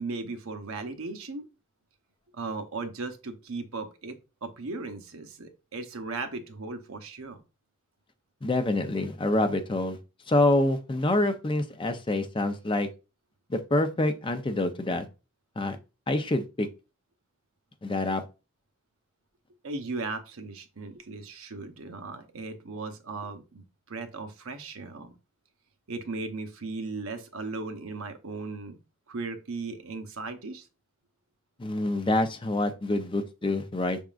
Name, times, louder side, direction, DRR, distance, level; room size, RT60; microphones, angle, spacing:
voice 1, 0.0-1.5 2.3-7.4 19.6-25.1 25.9-28.8 29.1-30.7, right 3 dB, 85° right, 0.8 m, -37 dB
voice 2, 8.4-10.0 10.3-12.9 13.5-15.1 15.6-15.8 16.1-16.7 17.8-18.2 31.6-34.0, left 2 dB, 25° left, 0.5 m, -26 dB
6.0 x 3.6 x 2.4 m
head